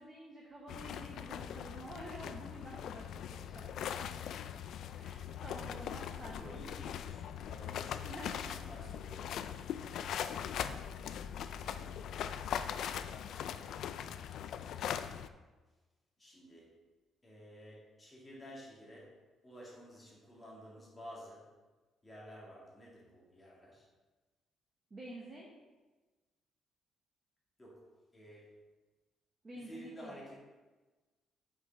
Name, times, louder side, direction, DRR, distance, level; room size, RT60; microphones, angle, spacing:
voice 1, 0.0-4.4 5.0-6.6 8.0-8.7 24.9-25.5 29.4-30.1, right 1 dB, 20° right, -3 dB, 1.0 m, -49 dB
sound 1, 0.7-15.3, left 9 dB, 60° left, 0.3 m, -41 dB
voice 2, 6.3-8.1 8.5-9.3 16.2-16.7 17.2-21.5 22.0-23.9 27.6-28.6 29.5-30.4, equal, 10° left, -6 dB, 2.2 m, -52 dB
8.3 x 5.5 x 4.0 m, 1.2 s
cardioid pair, 175°, 0 cm